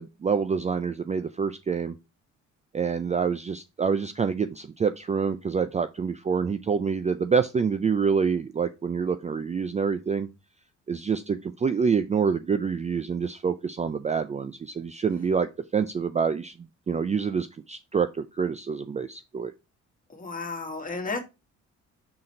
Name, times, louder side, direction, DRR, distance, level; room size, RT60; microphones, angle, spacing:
voice 1, 0.0-2.0 2.7-10.3 10.9-19.5, right 6 dB, 25° right, 0.4 m, -27 dB
voice 2, 20.1-21.2, left 3 dB, 25° left, 1.8 m, -33 dB
5.8 x 3.8 x 4.3 m
cardioid pair, 90°, 30 cm